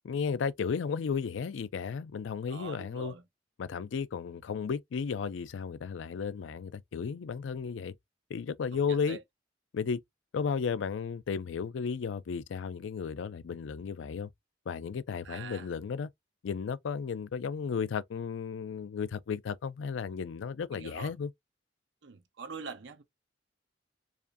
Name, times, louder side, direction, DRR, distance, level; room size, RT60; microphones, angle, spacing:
voice 1, 0.0-3.1 3.6-7.9 8.3-9.2 9.7-10.0 10.3-14.3 14.7-16.1 16.4-21.3, left 6 dB, 85° left, 0.4 m, -34 dB
voice 2, 2.5-3.2 9.1-9.2 15.2-15.7 20.7-21.1 22.0-23.0, right 5 dB, 75° right, 0.8 m, -43 dB
4.8 x 2.5 x 2.5 m
head